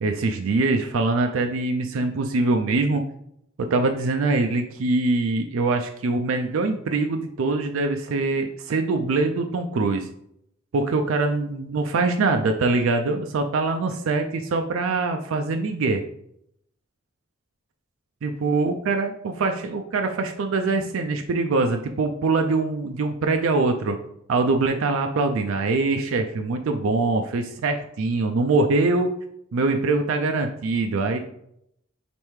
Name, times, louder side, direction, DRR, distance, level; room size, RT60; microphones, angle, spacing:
voice 1, 0.0-3.1 3.6-10.1 10.7-16.0 18.2-24.0 24.3-29.1 29.5-31.2, right 3 dB, 70° right, 5 dB, 0.4 m, -23 dB
5.2 x 3.2 x 3.1 m, 0.75 s
head